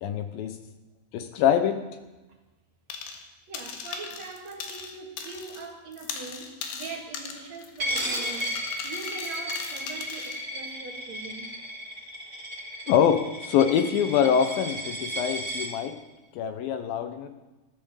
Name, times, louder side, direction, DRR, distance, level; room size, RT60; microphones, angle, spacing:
voice 1, 0.0-0.6 1.1-1.8 12.9-16.0 16.4-17.3, left 8 dB, 75° left, 9 dB, 2.4 m, -24 dB
sound 1, 2.9-3.3 3.5-5.7 5.9-10.4, left 6 dB, 90° left, 3.8 m, -38 dB
voice 2, 3.5-11.6, right 4 dB, 45° right, 2 dB, 2.9 m, -42 dB
Coin (dropping), 7.8-15.7, equal, 20° right, 3.1 m, -34 dB
14.0 x 13.5 x 7.2 m, 1.1 s
omnidirectional pair, 4.7 m